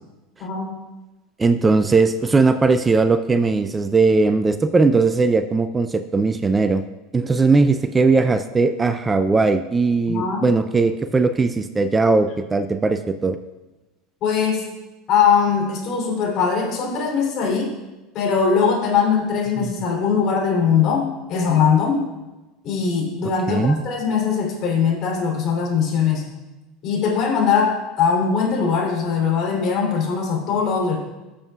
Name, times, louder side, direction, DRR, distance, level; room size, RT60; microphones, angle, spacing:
voice 1, 0.4-0.7 10.1-10.5 14.2-14.7 15.1-17.7 18.1-22.1 22.6-26.2 26.8-31.0, left 6 dB, 50° left, -1 dB, 3.4 m, -21 dB
voice 2, 1.4-6.8 7.1-13.4 19.6-19.7 23.5-23.8, right 3 dB, 20° right, 11 dB, 0.5 m, -19 dB
15.0 x 7.2 x 2.4 m, 1.1 s
hypercardioid pair, 85°, 0 cm